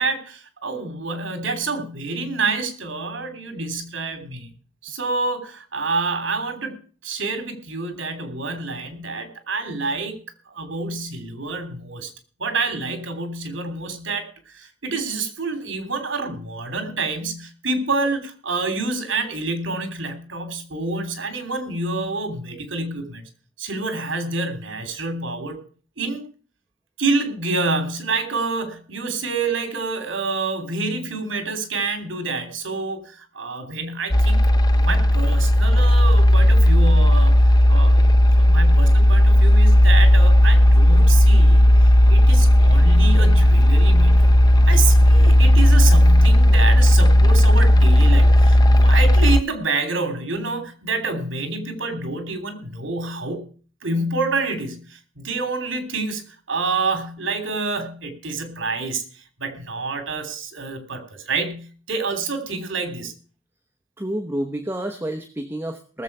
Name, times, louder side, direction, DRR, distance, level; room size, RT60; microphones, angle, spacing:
voice 1, 0.0-4.5 4.8-10.2 10.5-12.1 12.4-23.3 23.6-25.6 26.0-26.2 27.0-37.3 37.7-41.7 42.1-44.3 44.7-53.4 53.8-56.2 56.5-63.1, right 3 dB, 75° right, 8 dB, 3.1 m, -27 dB
sound 1, 34.1-49.4, left 1 dB, 20° left, 0.6 m, -13 dB
voice 2, 64.0-66.0, right 1 dB, 10° right, 4 dB, 1.0 m, -29 dB
18.5 x 7.4 x 5.5 m, 0.41 s
head